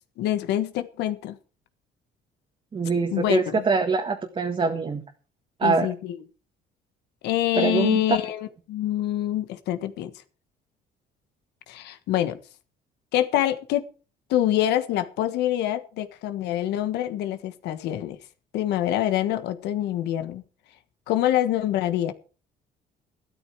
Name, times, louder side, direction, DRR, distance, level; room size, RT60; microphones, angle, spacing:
voice 1, 0.2-1.3 3.1-3.6 5.6-6.2 7.2-10.1 11.7-12.4 13.1-13.9 14.3-18.2 18.5-20.4 21.1-22.1, left 12 dB, 85° left, 10 dB, 1.5 m, -25 dB
voice 2, 2.7-5.0 5.6-5.9 7.5-8.0, right 4 dB, 30° right, 4 dB, 1.7 m, -24 dB
13.5 x 13.0 x 4.7 m, 0.36 s
cardioid pair, 110°, 17 cm